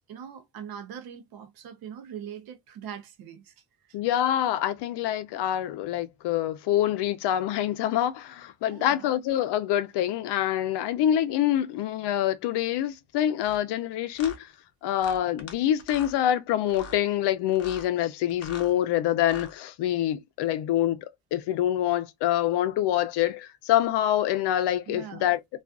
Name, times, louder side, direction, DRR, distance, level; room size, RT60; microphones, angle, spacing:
voice 1, 0.1-3.5 3.8-4.0 8.7-9.1 24.9-25.3, right 8 dB, 65° right, 0.7 m, -41 dB
voice 2, 3.9-14.5 14.8-25.4, left 12 dB, 85° left, 0.6 m, -26 dB
sound 1, 13.4-13.6 14.2-14.4 15.0-15.5 15.8-16.2 16.7-17.0 17.5-17.9 18.3-18.7 19.2-19.5, left 4 dB, 40° left, 0.6 m, -42 dB
2.4 x 2.3 x 2.3 m
cardioid pair, 155°, 40 cm